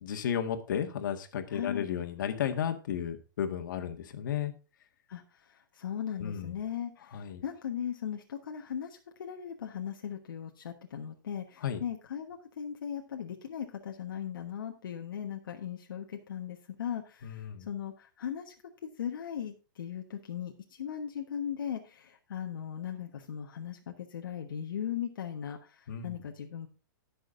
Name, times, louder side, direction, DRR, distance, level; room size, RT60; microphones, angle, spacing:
voice 1, 0.0-4.5 6.2-6.6 7.1-7.4 11.6-11.8 17.2-17.7 25.9-26.2, left 8 dB, 65° left, 5 dB, 1.7 m, -33 dB
voice 2, 1.5-1.9 5.1-18.5 19.0-26.7, left 9 dB, 90° left, 2 dB, 1.2 m, -38 dB
18.5 x 6.3 x 2.6 m, 0.33 s
hypercardioid pair, 155°, 11 cm